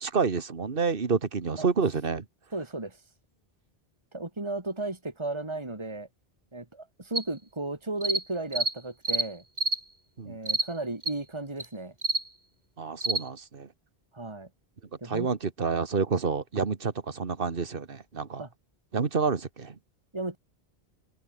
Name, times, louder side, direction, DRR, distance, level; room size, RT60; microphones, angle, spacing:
voice 1, 0.0-2.2 10.2-10.4 12.8-13.7 15.1-18.4 18.9-19.7, right 5 dB, 60° right, 1.8 m, -28 dB
voice 2, 2.5-3.0 4.1-6.1 6.5-9.4 10.2-11.9 14.1-14.5 15.0-15.3 18.4-18.5 20.1-20.4, right 2 dB, 25° right, 2.7 m, -34 dB
sound 1, 7.1-7.2 8.0-8.2 8.5-8.7 9.0-9.3 9.6-9.8 10.5-10.7 11.0-11.1 11.6-11.7 12.0-12.2 13.0-13.2, right 2 dB, 45° right, 3.2 m, -27 dB
omnidirectional pair, 1.1 m